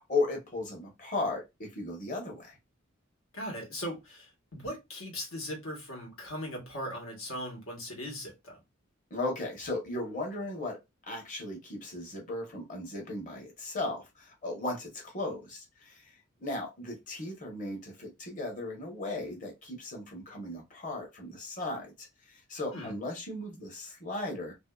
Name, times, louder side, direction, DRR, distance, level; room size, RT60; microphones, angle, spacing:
voice 1, 0.0-2.6 9.1-10.8 11.1-16.2 16.4-24.5, left 2 dB, 40° left, 0.9 m, -36 dB
voice 2, 3.3-8.6 22.7-23.0, equal, 90° left, 1.3 m, -39 dB
2.6 x 2.5 x 2.2 m
head